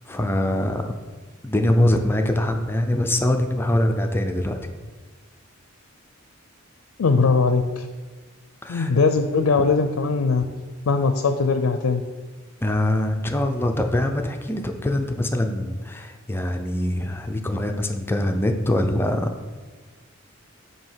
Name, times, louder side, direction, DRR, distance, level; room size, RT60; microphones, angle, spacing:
voice 1, 0.1-1.0 1.4-4.8 8.6-8.9 12.6-19.3, left 1 dB, 10° left, 5 dB, 0.4 m, -23 dB
voice 2, 7.0-7.9 8.7-10.5 10.9-12.0, left 4 dB, 75° left, 8 dB, 0.4 m, -20 dB
7.4 x 2.8 x 5.6 m, 1.4 s
head